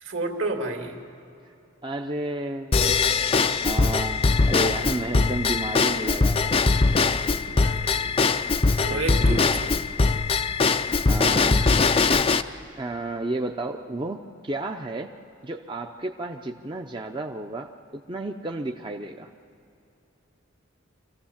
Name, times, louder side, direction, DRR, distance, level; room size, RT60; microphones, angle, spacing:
voice 1, 0.0-1.0 7.4-8.2 8.8-9.6, right 2 dB, 70° right, 3 dB, 2.3 m, -31 dB
voice 2, 1.8-3.2 3.6-6.5 8.8-9.4 11.1-11.8 12.8-15.2 15.4-19.3, right 2 dB, 25° right, 3 dB, 0.6 m, -32 dB
Drum kit / Drum / Bell, 2.7-12.4, left 4 dB, 30° left, 0.4 m, -21 dB
25.5 x 15.5 x 7.2 m, 2.7 s
head